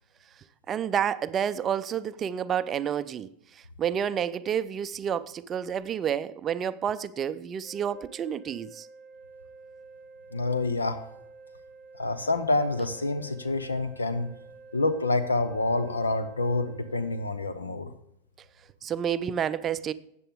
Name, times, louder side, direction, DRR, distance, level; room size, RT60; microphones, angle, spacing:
voice 1, 0.7-3.3 3.8-8.9 18.8-19.9, right 8 dB, 25° right, 0.4 m, -29 dB
sound 1, 7.6-17.3, right 4 dB, 35° left, 3.6 m, -50 dB
voice 2, 10.3-11.0 12.0-14.3 14.7-17.9, left 2 dB, 75° left, 0.8 m, -27 dB
13.5 x 8.5 x 3.6 m
figure-of-eight pair, 90°, 0 cm